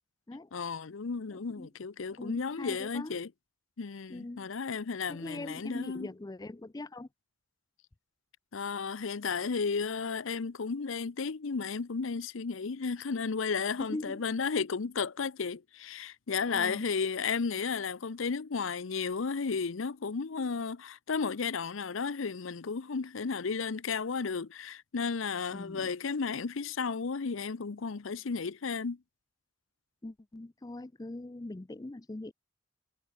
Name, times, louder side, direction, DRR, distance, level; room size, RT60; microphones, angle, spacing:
voice 1, 0.5-3.3 3.8-6.1 8.5-29.0, left 5 dB, 70° left, 0.6 m, -33 dB
voice 2, 1.3-1.7 2.2-3.1 4.1-4.5 5.1-7.1 13.8-14.2 16.5-16.9 25.5-25.9 30.0-32.3, left 2 dB, 20° left, 0.4 m, -41 dB
head